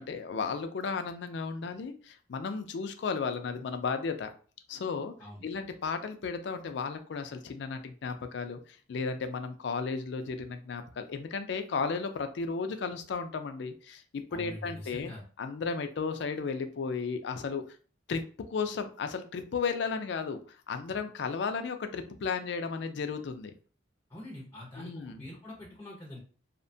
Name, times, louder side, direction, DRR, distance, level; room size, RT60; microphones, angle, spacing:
voice 1, 0.0-4.3 4.7-5.1 5.4-15.1 15.4-17.6 18.1-23.5 24.8-25.2, left 5 dB, 65° left, 7 dB, 0.4 m, -34 dB
voice 2, 14.3-15.2 24.1-26.2, left 1 dB, 15° left, -3 dB, 0.5 m, -44 dB
2.8 x 2.1 x 2.6 m, 0.40 s
head